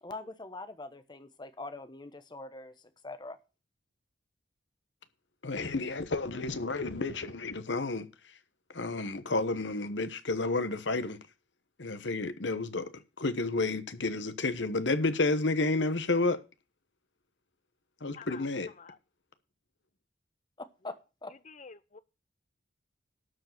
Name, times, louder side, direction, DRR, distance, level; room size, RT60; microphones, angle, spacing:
voice 1, 0.0-2.7 3.0-3.4 20.6-21.3, left 2 dB, 25° left, 1.1 m, -43 dB
voice 2, 5.4-8.1 8.7-11.2 11.8-12.9 13.2-16.4 18.0-18.7, left 3 dB, 80° left, 1.1 m, -30 dB
voice 3, 18.1-18.5 18.8-19.0 21.4-22.0, left 5 dB, 40° left, 0.8 m, -49 dB
12.5 x 4.8 x 7.8 m
head